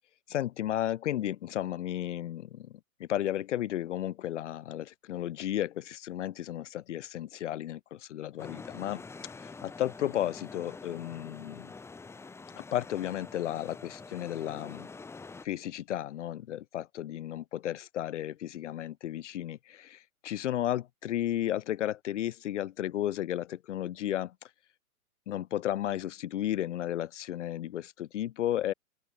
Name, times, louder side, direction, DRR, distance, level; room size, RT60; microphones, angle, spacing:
voice 1, 0.3-2.7 3.0-9.0 9.6-11.7 12.6-14.9 15.4-24.3 25.3-28.7, left 12 dB, 55° left, 0.8 m, -33 dB
sound 1, 8.4-15.5, left 4 dB, 5° left, 1.3 m, -46 dB
open air
hypercardioid pair, 125°, 44 cm